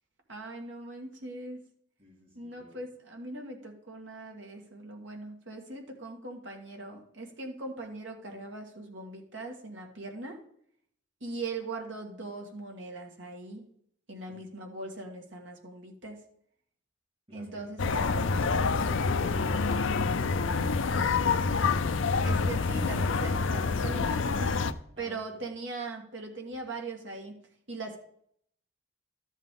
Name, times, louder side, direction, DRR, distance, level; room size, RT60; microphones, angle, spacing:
voice 1, 0.3-1.6 2.3-10.4 11.2-13.7 14.1-16.2 17.3-17.9 22.2-24.6 25.0-27.4 27.7-28.0, right 3 dB, 75° right, 1 dB, 2.0 m, -40 dB
voice 2, 2.0-2.8 14.3-14.4 17.3-17.6 18.0-20.4 24.9-25.4, equal, 30° right, -3 dB, 3.0 m, -52 dB
sound 1, 17.8-24.7, left 4 dB, 80° left, 0.6 m, -27 dB
12.5 x 7.4 x 3.8 m, 0.67 s
head